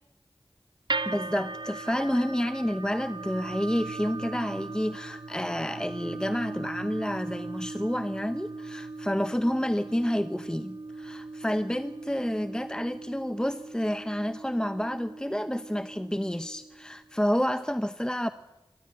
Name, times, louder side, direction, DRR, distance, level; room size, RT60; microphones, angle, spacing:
sound 1, 0.9-17.1, right 3 dB, 60° right, 1.0 m, -39 dB
voice 1, 1.0-18.3, equal, 10° left, 11 dB, 0.8 m, -29 dB
26.0 x 13.5 x 9.7 m, 1.0 s
wide cardioid pair, 40°, 9 cm